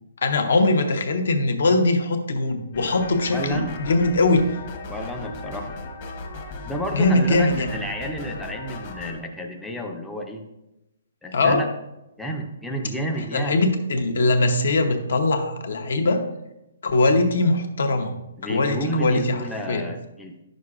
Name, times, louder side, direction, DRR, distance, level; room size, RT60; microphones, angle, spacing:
voice 1, 0.2-4.6 6.9-7.7 11.3-11.7 13.3-16.2 16.8-18.1 18.4-19.9, left 2 dB, 70° left, 6 dB, 0.9 m, -21 dB
sound 1, 2.7-9.2, left 2 dB, 35° left, 1.0 m, -36 dB
voice 2, 3.3-3.7 4.9-5.7 6.6-10.4 11.2-11.7 12.2-13.6 18.4-20.4, right 1 dB, ahead, 0 dB, 0.4 m, -30 dB
9.6 x 6.4 x 2.4 m, 0.93 s
hypercardioid pair, 170°, 0 cm